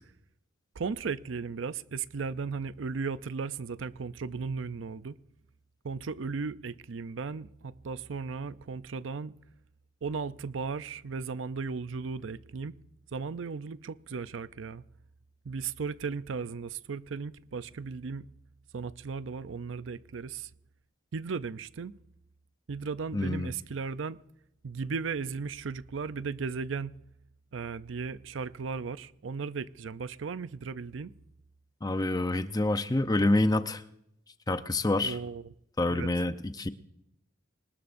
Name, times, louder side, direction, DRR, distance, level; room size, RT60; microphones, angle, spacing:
voice 1, 0.8-5.2 5.8-9.3 10.0-12.7 13.1-14.8 15.4-18.3 18.7-20.5 21.1-21.9 22.7-24.2 24.6-27.0 27.5-31.1 35.0-35.5 35.9-36.1, right 5 dB, 80° right, 0.5 m, -36 dB
voice 2, 23.1-23.5 31.8-33.8 34.5-35.2 35.8-36.7, left 2 dB, 20° left, 0.7 m, -27 dB
25.0 x 20.0 x 2.6 m
head